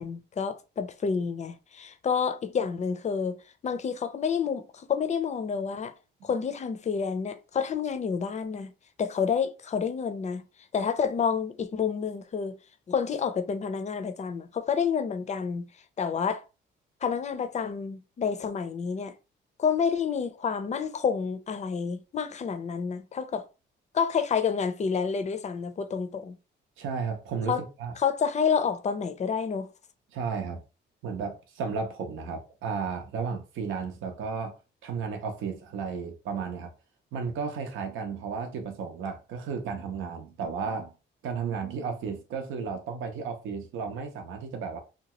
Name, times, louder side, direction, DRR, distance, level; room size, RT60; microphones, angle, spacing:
voice 1, 0.0-3.4 3.6-5.9 6.2-8.7 9.0-10.4 10.7-12.6 12.9-15.7 16.0-16.4 17.0-19.1 19.6-23.4 23.9-26.4 27.5-27.6 28.0-29.7, left 6 dB, 35° left, 0.5 m, -29 dB
voice 2, 26.8-27.9 30.1-30.6 31.0-36.7 37.1-40.9 41.2-44.8, right 5 dB, 80° right, 0.6 m, -33 dB
2.8 x 2.2 x 2.9 m
cardioid pair, 90°, 20 cm